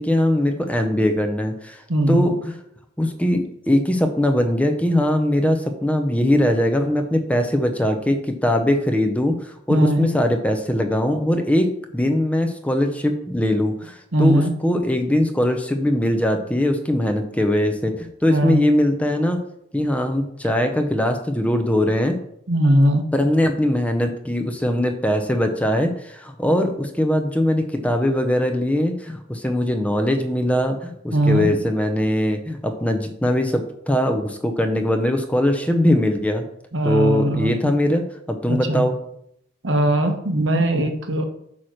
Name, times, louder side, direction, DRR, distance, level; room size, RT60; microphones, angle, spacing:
voice 1, 0.0-2.6 3.0-19.4 19.7-22.2 23.1-36.4 36.8-38.9, left 1 dB, 5° left, 5 dB, 0.6 m, -21 dB
voice 2, 1.9-2.3 9.7-10.1 14.1-14.6 18.3-18.7 22.5-23.0 31.1-31.5 36.7-37.7 38.5-38.8 39.6-41.2, right 1 dB, 70° right, 5 dB, 1.1 m, -20 dB
8.5 x 3.0 x 6.4 m, 0.74 s
head